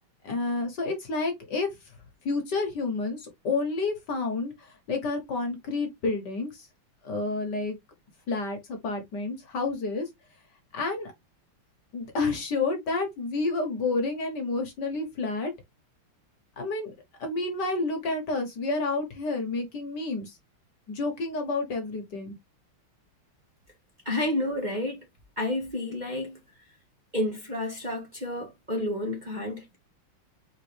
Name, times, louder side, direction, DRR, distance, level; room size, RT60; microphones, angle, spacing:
voice 1, 0.2-1.7 2.2-6.7 7.0-7.8 8.3-10.1 10.7-11.1 11.9-15.5 16.6-16.9 17.2-20.4 20.9-22.3, left 3 dB, 55° left, 1.6 m, -30 dB
voice 2, 24.0-25.0 25.4-26.4 27.1-29.8, left 1 dB, 25° right, 1.3 m, -30 dB
4.4 x 3.6 x 3.3 m
omnidirectional pair, 2.4 m